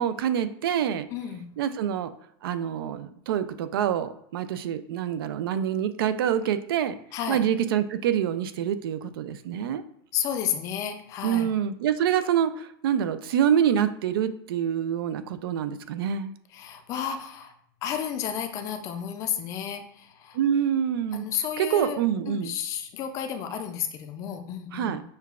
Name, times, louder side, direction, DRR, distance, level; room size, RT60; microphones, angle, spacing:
voice 1, 0.0-1.1 1.6-2.1 2.4-7.0 7.3-9.8 11.2-16.3 20.3-21.3 21.6-22.6 24.7-25.0, right 9 dB, 85° right, 12 dB, 0.4 m, -26 dB
voice 2, 1.1-1.5 7.1-7.4 10.1-11.5 16.5-17.5 17.8-20.4 21.1-22.0 22.3-25.0, left 9 dB, 25° left, 6 dB, 0.4 m, -32 dB
6.5 x 2.3 x 2.4 m, 0.72 s
supercardioid pair, 160°, 12 cm